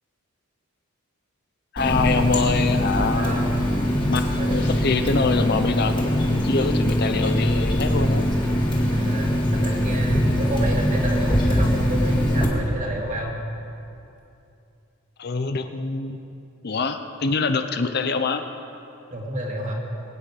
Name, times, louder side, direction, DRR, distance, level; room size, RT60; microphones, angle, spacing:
voice 1, 1.7-3.4 4.0-8.3 15.2-16.2 16.6-18.4, left 4 dB, 50° left, 8 dB, 0.6 m, -25 dB
Water tap faucet, 1.8-12.5, equal, 25° left, 2.1 m, -22 dB
voice 2, 3.2-3.6 4.4-4.7 8.9-13.3 19.1-19.8, right 1 dB, 35° right, -1 dB, 2.1 m, -29 dB
22.5 x 9.0 x 4.9 m, 2.7 s
head